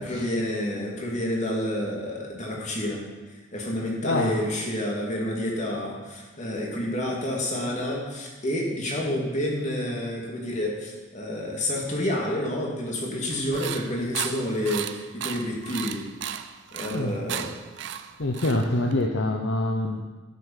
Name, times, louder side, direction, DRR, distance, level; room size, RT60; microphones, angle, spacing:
voice 1, 0.0-16.0 16.7-17.5, left 1 dB, 35° left, -2 dB, 2.5 m, -29 dB
voice 2, 4.0-4.4 16.8-17.2 18.2-20.0, left 1 dB, 60° left, 3 dB, 0.8 m, -26 dB
sound 1, 13.3-19.1, right 9 dB, 55° right, 0.5 m, -35 dB
11.5 x 8.1 x 5.7 m, 1.2 s
head